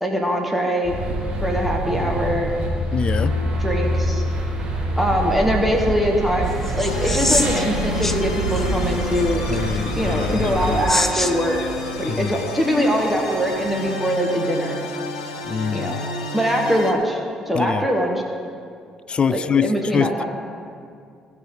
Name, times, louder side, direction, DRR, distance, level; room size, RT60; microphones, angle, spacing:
voice 1, 0.0-0.9 1.4-2.5 3.6-4.2 5.0-9.4 10.0-11.6 12.0-14.8 15.7-16.0 16.3-17.2 17.5-18.2 19.3-20.2, equal, 5° right, 0 dB, 1.7 m, -22 dB
sound 1, 0.8-10.8, equal, 45° right, 2.7 m, -25 dB
voice 2, 2.9-3.4 9.5-11.0 12.1-12.5 15.4-15.9 17.5-17.9 19.1-20.2, left 7 dB, 40° left, 19 dB, 0.3 m, -24 dB
sound 2, 6.4-13.9, left 1 dB, 10° left, 0.8 m, -29 dB
sound 3, 6.9-16.9, left 2 dB, 85° left, 0.8 m, -31 dB
17.5 x 5.9 x 3.9 m, 2.3 s
hypercardioid pair, 50°, 3 cm